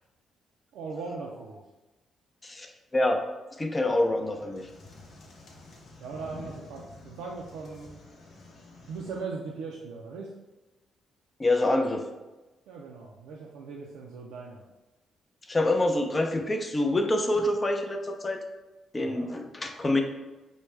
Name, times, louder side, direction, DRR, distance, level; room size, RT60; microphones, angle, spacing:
voice 1, 0.7-1.6 6.0-8.0 8.9-10.3 12.7-14.6 19.0-19.3, right 4 dB, 85° right, -2 dB, 0.4 m, -39 dB
voice 2, 2.4-3.2 3.6-4.7 11.4-12.1 15.5-18.4 18.9-20.0, left 1 dB, 25° left, 5 dB, 0.5 m, -26 dB
sound 1, 3.9-9.2, left 2 dB, 60° left, 0.8 m, -49 dB
4.6 x 2.1 x 3.2 m, 1.1 s
cardioid pair, 75°, 0 cm